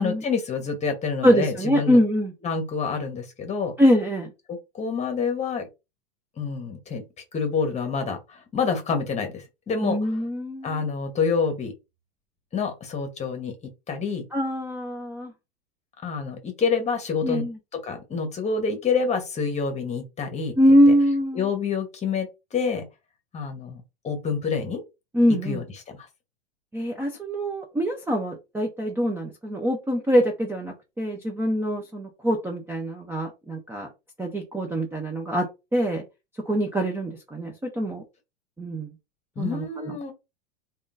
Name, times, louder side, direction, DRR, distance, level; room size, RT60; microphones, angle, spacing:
voice 1, 0.0-2.0 2.4-3.7 4.5-5.7 6.4-7.0 7.3-10.2 10.6-11.7 12.5-13.5 13.9-14.2 16.0-17.4 17.8-20.5 20.9-21.0 21.3-22.9 23.3-24.8 25.3-26.1 39.4-40.1, left 5 dB, 20° left, 1.1 m, -27 dB
voice 2, 1.2-2.3 3.8-4.3 9.8-10.8 14.3-15.3 17.2-17.5 20.6-21.5 25.1-25.6 26.7-33.9 34.2-35.5 35.7-36.0 36.5-38.0 38.6-38.9 39.4-39.9, equal, 5° right, 0.6 m, -23 dB
3.5 x 2.5 x 2.5 m
hypercardioid pair, 105°, 31 cm